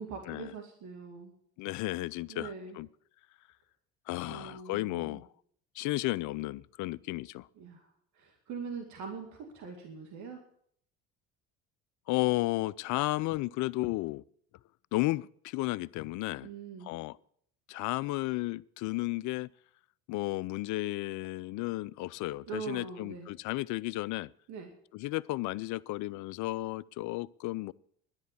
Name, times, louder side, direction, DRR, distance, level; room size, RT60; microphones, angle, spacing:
voice 1, 0.0-1.3 2.3-2.8 4.2-5.2 7.6-7.9 8.1-10.4 16.4-16.9 22.5-23.3 24.5-24.7, right 5 dB, 60° right, 2.3 m, -42 dB
voice 2, 1.6-2.9 4.1-5.3 5.8-7.5 12.1-14.2 14.9-16.5 16.8-17.2 17.7-19.5 20.1-24.3 24.9-27.7, left 19 dB, 60° left, 0.5 m, -33 dB
11.0 x 10.5 x 8.4 m
hypercardioid pair, 70°, 34 cm